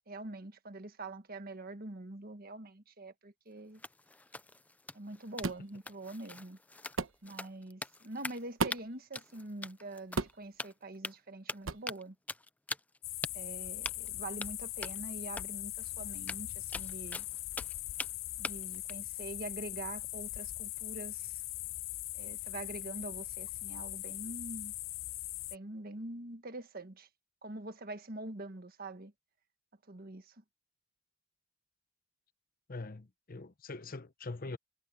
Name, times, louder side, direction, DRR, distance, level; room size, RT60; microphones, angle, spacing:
voice 1, 0.1-3.8 4.9-6.6 7.2-12.1 13.3-17.2 18.4-21.4 22.1-24.7 25.5-27.1 27.4-29.1 29.9-30.2, right 2 dB, 45° right, 1.6 m, -44 dB
sound 1, 3.7-8.5 8.7-8.8 9.1-10.3 10.6-11.2 11.5-12.0 12.3-13.0 13.2-13.3 13.8-14.1 14.4-14.5 14.8-15.0 15.4-15.5 15.8-15.9 16.1-18.1 18.4-18.9, left 2 dB, 10° left, 0.4 m, -42 dB
sound 2, 5.4-5.7 7.0-7.2 8.6-9.0 10.2-10.5 11.6-11.9, right 4 dB, 75° right, 1.1 m, -34 dB
sound 3, 13.0-25.6, left 18 dB, 70° left, 0.4 m, -40 dB
voice 2, 32.7-34.6, left 3 dB, 45° left, 0.8 m, -43 dB
head